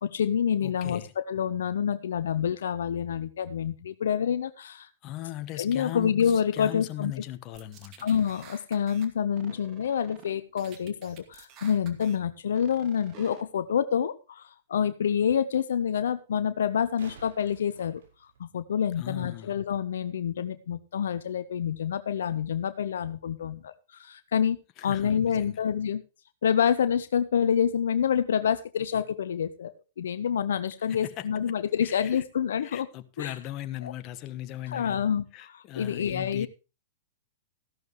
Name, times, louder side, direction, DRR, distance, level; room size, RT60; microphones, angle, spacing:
voice 1, 0.0-4.9 5.6-7.1 8.0-18.0 18.4-26.0 26.4-32.9 33.2-33.3 33.8-33.9 34.7-36.5, left 8 dB, 70° left, 0.8 m, -27 dB
voice 2, 0.6-1.1 5.0-8.1 19.0-19.5 24.8-25.6 30.9-31.2 31.8-32.2 32.6-35.0 35.3-36.5, left 14 dB, 40° left, 1.2 m, -38 dB
sound 1, 7.5-9.1 9.4-10.3 10.6-12.2 12.5-13.4, right 7 dB, 40° right, 2.4 m, -50 dB
sound 2, 13.8-13.9 16.6-18.8 21.6-21.7, right 5 dB, 70° right, 5.4 m, -52 dB
14.5 x 12.0 x 3.1 m
hypercardioid pair, 110°, 0 cm